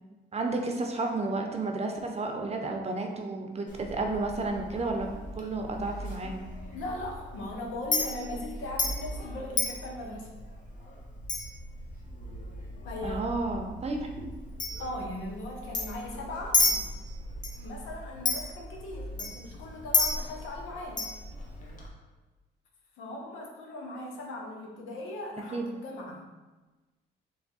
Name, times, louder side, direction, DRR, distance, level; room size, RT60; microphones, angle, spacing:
voice 1, 0.3-5.1 5.3-6.5 13.0-14.3 25.5-25.7, right 3 dB, 30° right, 3 dB, 0.7 m, -32 dB
Chink clink, 3.7-21.9, left 3 dB, 40° left, 1.0 m, -34 dB
voice 2, 6.7-10.3 12.8-13.4 14.8-16.9 17.5-21.1 23.0-26.2, left 1 dB, 85° left, -1 dB, 0.9 m, -39 dB
3.4 x 3.3 x 4.0 m, 1.2 s
cardioid pair, 90°, 20 cm